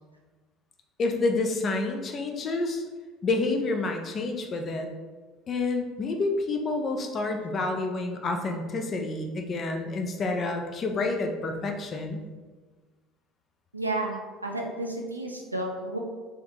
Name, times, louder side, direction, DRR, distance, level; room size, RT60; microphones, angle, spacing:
voice 1, 1.0-2.8 3.2-4.9 5.5-12.2, left 3 dB, 35° left, 4 dB, 0.5 m, -28 dB
voice 2, 13.7-16.0, right 2 dB, 85° right, 1 dB, 0.4 m, -32 dB
3.5 x 3.4 x 2.9 m, 1.4 s
figure-of-eight pair, 60°, 0 cm